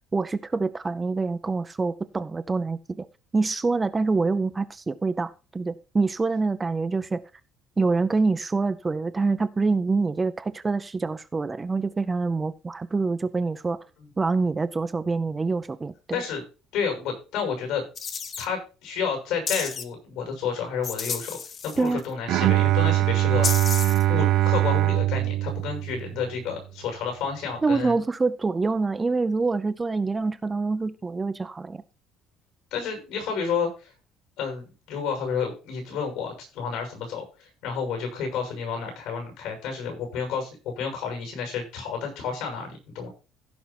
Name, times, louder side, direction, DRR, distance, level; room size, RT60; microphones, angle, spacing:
voice 1, 0.1-3.1 3.3-7.2 7.8-13.8 14.2-16.2 21.8-22.0 27.6-31.8, right 3 dB, 15° right, 0.5 m, -26 dB
voice 2, 16.1-16.4 16.7-17.8 18.4-21.4 21.6-23.5 24.1-27.9 32.7-33.9 34.4-43.1, left 6 dB, 75° left, 6.9 m, -30 dB
sound 1, 18.0-18.5 19.5-19.8 20.8-22.1 23.4-24.0, left 6 dB, 35° left, 1.0 m, -31 dB
Bowed string instrument, 22.3-26.4, right 15 dB, 60° right, 0.5 m, -22 dB
15.5 x 5.6 x 4.4 m
cardioid pair, 155°, 0 cm